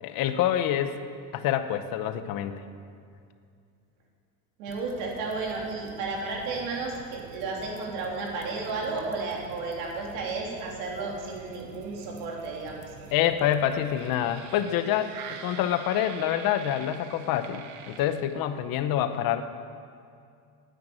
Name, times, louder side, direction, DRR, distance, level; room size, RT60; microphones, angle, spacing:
voice 1, 0.0-1.0 1.3-2.6 13.1-15.1 15.4-19.4, left 11 dB, 50° left, 10 dB, 0.9 m, -26 dB
voice 2, 4.6-12.8, right 3 dB, 70° right, -1 dB, 3.3 m, -33 dB
sound 1, 4.7-18.6, right 7 dB, 90° right, 1.2 m, -47 dB
10.5 x 9.4 x 8.7 m, 2.4 s
cardioid pair, 155°, 44 cm